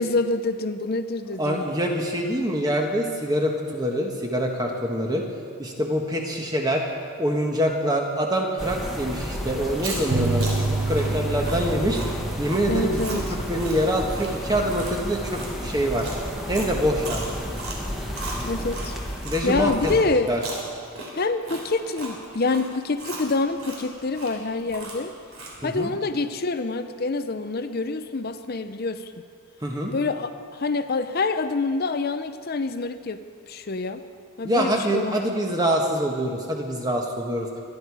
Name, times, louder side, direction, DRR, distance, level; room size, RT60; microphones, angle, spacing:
voice 1, 0.0-1.6 12.7-13.3 18.4-18.9 19.4-20.3 21.1-25.1 25.6-29.1 29.9-34.0 34.4-35.3, left 3 dB, 45° left, 10 dB, 0.6 m, -26 dB
voice 2, 1.4-5.2 5.6-6.8 7.2-12.0 12.4-13.2 13.5-16.1 16.5-17.2 19.2-19.9 20.3-20.4 25.6-25.9 29.6-29.9 34.4-37.5, equal, 15° right, 1 dB, 1.3 m, -25 dB
sound 1, 8.6-20.0, equal, ahead, 1.4 m, -32 dB
Chewing mastication, 9.7-19.4 19.8-25.7, right 2 dB, 70° right, 3.3 m, -37 dB
sound 2, 10.1-15.2, right 3 dB, 85° right, 0.7 m, -30 dB
24.0 x 10.5 x 4.8 m, 2.3 s
head